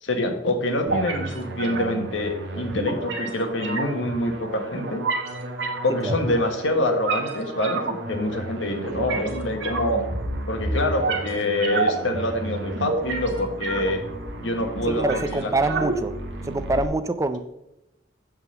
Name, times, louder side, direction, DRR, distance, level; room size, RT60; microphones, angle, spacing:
voice 1, 0.0-5.0 5.8-10.0 10.5-14.0 14.4-15.5, left 1 dB, 80° left, 5 dB, 1.3 m, -26 dB
sound 1, 0.9-16.9, right 2 dB, 70° right, 1.3 m, -30 dB
voice 2, 8.8-9.2 14.9-16.2 16.4-17.4, right 2 dB, 15° right, 11 dB, 0.4 m, -25 dB
8.1 x 3.7 x 6.7 m, 0.91 s
head